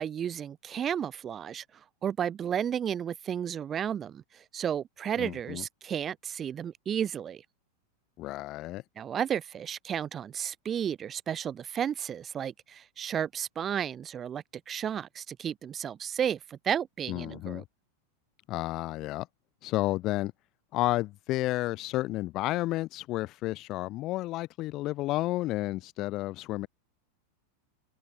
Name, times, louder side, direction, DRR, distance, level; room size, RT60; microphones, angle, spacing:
voice 1, 0.0-7.4 9.0-17.6, right 9 dB, 30° right, 1.0 m, -33 dB
voice 2, 5.2-5.6 8.2-8.8 17.1-17.6 18.5-19.3 19.6-20.3 20.7-26.7, left 17 dB, 45° left, 0.5 m, -31 dB
hypercardioid pair, 95°, 0 cm